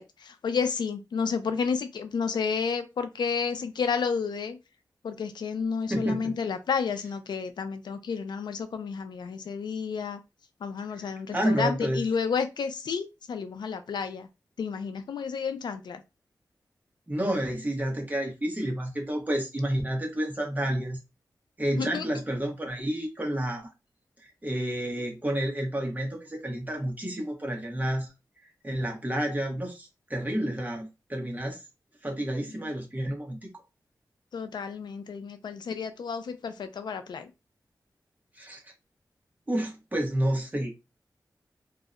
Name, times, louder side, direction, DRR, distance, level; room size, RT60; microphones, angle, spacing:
voice 1, 0.0-4.6 5.0-10.2 10.6-14.3 14.6-16.0 21.8-22.0 34.3-37.3, left 5 dB, 85° left, 0.4 m, -31 dB
voice 2, 5.9-6.3 10.9-12.0 17.1-21.0 21.6-23.7 24.2-28.1 28.6-31.6 32.0-33.5 38.4-38.6 39.5-40.7, right 1 dB, 20° right, 0.9 m, -30 dB
2.6 x 2.1 x 2.4 m
wide cardioid pair, 70°, 7 cm